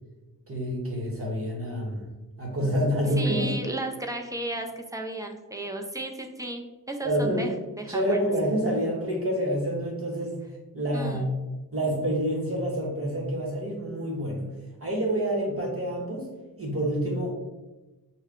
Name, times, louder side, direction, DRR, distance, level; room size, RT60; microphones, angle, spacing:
voice 1, 0.5-2.0 2.4-3.5 7.0-7.5 7.9-10.4 10.7-11.3 11.7-14.5 14.8-16.3 16.6-17.3, equal, 40° right, -2 dB, 1.2 m, -27 dB
voice 2, 3.2-6.6 6.9-7.5 7.8-8.2 10.9-11.3, right 1 dB, 10° right, 2 dB, 0.5 m, -34 dB
5.4 x 2.2 x 3.6 m, 1.1 s
wide cardioid pair, 95°, 36 cm